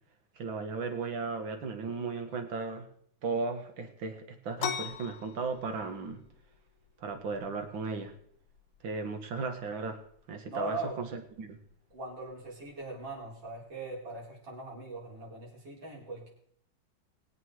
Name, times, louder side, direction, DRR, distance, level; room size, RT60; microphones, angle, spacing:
voice 1, 0.4-2.9 3.2-6.2 7.0-8.1 8.8-10.0 10.3-11.6, right 4 dB, 85° right, 5 dB, 2.4 m, -36 dB
sound 1, 4.6-14.0, left 8 dB, 85° left, 1.7 m, -45 dB
voice 2, 10.5-11.0 11.9-16.3, right 2 dB, 65° right, -3 dB, 4.9 m, -40 dB
21.5 x 8.7 x 4.8 m, 0.65 s
omnidirectional pair, 2.1 m